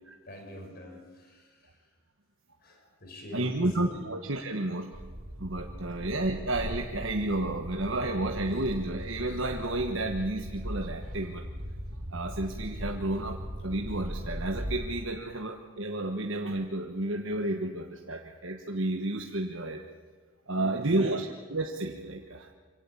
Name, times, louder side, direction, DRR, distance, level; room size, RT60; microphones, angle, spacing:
voice 1, 0.3-1.8 2.6-3.7 3.9-4.0 5.9-6.0 15.3-15.4 16.0-16.1 20.5-21.2, left 1 dB, 45° left, 2 dB, 5.9 m, -46 dB
voice 2, 3.3-5.0 5.4-11.4 12.1-13.4 13.6-19.8 20.5-22.5, right 2 dB, 60° right, 3 dB, 1.3 m, -31 dB
sound 1, 4.9-15.0, equal, 85° right, 3.0 m, -39 dB
24.5 x 17.0 x 8.5 m, 1.5 s
head